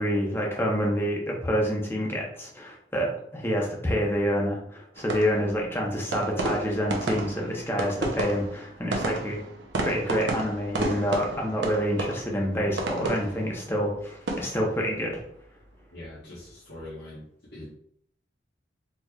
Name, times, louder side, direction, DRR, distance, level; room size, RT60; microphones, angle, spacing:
voice 1, 0.0-9.4 9.8-15.2, equal, 15° left, -1 dB, 0.8 m, -27 dB
sound 1, 4.9-16.1 16.4-16.9, right 2 dB, 75° right, 0.7 m, -33 dB
voice 2, 15.9-17.2 17.5-17.7, left 1 dB, 65° left, -10 dB, 1.3 m, -42 dB
4.3 x 3.2 x 2.4 m, 0.69 s
head